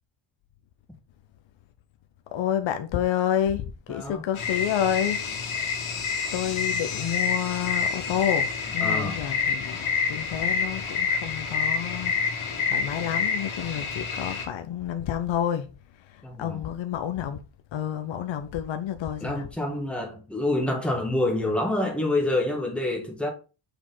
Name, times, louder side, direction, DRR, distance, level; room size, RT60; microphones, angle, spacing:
voice 1, 2.3-5.2 5.5-5.9 6.3-17.4 17.7-19.5, left 10 dB, 70° left, 0.7 m, -29 dB
voice 2, 3.9-4.2 8.8-9.2 16.2-16.6 19.2-23.3, left 2 dB, ahead, 1.5 m, -27 dB
sound 1, 4.4-14.5, left 5 dB, 90° left, 2.1 m, -28 dB
6.7 x 4.8 x 3.9 m
wide cardioid pair, 175°, 47 cm